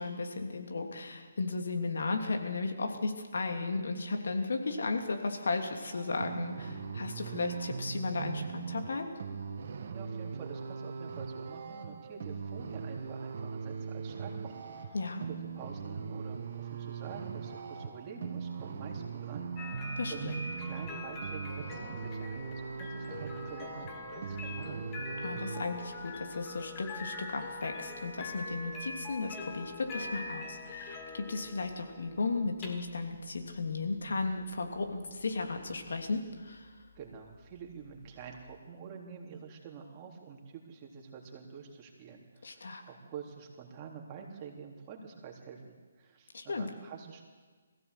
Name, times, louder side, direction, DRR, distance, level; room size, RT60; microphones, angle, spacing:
voice 1, 0.0-9.1 14.9-15.2 20.0-20.4 25.2-36.7 42.4-42.8 46.3-46.7, left 3 dB, 65° left, 4 dB, 3.0 m, -35 dB
sound 1, 5.9-25.6, right 5 dB, 50° right, 1.8 m, -40 dB
voice 2, 9.9-15.0 15.2-19.8 20.1-24.9 37.0-47.2, right 6 dB, 25° right, 0 dB, 3.5 m, -47 dB
sound 2, 19.6-38.6, left 2 dB, 25° left, 2.6 m, -44 dB
21.5 x 15.5 x 8.3 m, 1.5 s
figure-of-eight pair, 145°, 0 cm